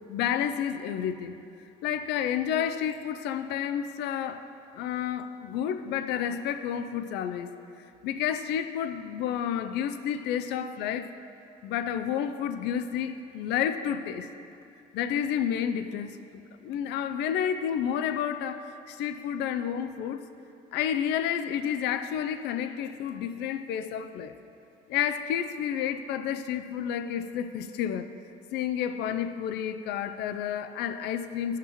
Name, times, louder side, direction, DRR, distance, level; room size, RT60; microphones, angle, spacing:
voice 1, 0.1-1.3 1.8-4.5 4.7-7.5 8.0-11.1 11.6-14.3 14.9-16.1 16.6-20.2 20.7-24.4 24.9-28.1 28.5-31.6, left 9 dB, 85° left, 10 dB, 0.5 m, -30 dB
16.0 x 5.8 x 3.0 m, 2.7 s
cardioid pair, 110°, 17 cm